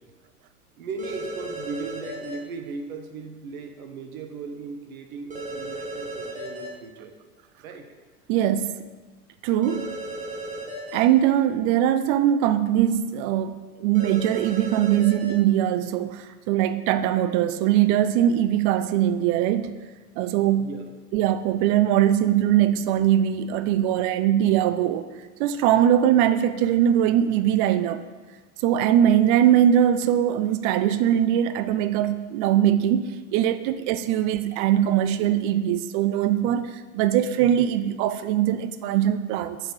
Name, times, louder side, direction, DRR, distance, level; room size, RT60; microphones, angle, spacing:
voice 1, 0.8-7.2 7.6-7.9 20.6-20.9, right 4 dB, 65° right, 5 dB, 1.2 m, -37 dB
sound 1, 1.0-2.3 5.3-6.7 9.6-11.0 13.9-15.3, right 1 dB, 15° right, 1.6 m, -35 dB
voice 2, 8.3-8.8 9.4-9.9 10.9-19.7 20.2-20.7 21.1-25.1 25.4-28.0 28.6-39.6, right 11 dB, 35° right, 12 dB, 0.5 m, -21 dB
7.7 x 4.8 x 5.4 m, 1.3 s
figure-of-eight pair, 85°, 46 cm